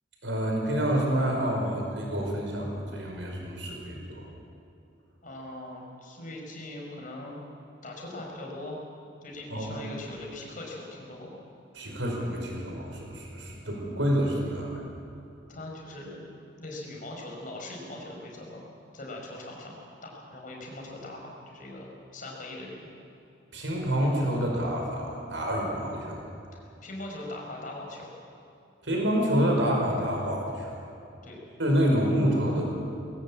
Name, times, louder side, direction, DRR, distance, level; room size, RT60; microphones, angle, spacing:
voice 1, 0.2-4.3 9.5-9.8 11.7-14.8 23.5-26.2 28.8-30.7 31.6-32.7, equal, 85° right, 0 dB, 5.2 m, -28 dB
voice 2, 5.2-7.4 7.8-8.9 9.2-11.4 15.5-16.3 16.6-18.7 18.9-22.9 26.5-28.1 31.2-31.4, left 1 dB, 45° left, -1 dB, 5.1 m, -41 dB
20.0 x 17.0 x 8.7 m, 2.6 s
head